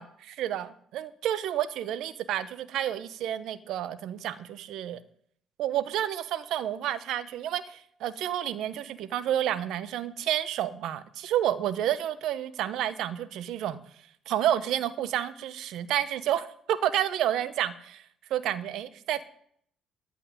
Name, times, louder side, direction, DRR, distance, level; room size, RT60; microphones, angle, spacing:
voice 1, 0.0-5.0 5.6-13.8 14.3-18.0 18.3-19.2, right 11 dB, 70° right, 13 dB, 1.1 m, -30 dB
14.5 x 5.8 x 9.9 m, 0.63 s
supercardioid pair, 65°, 0 cm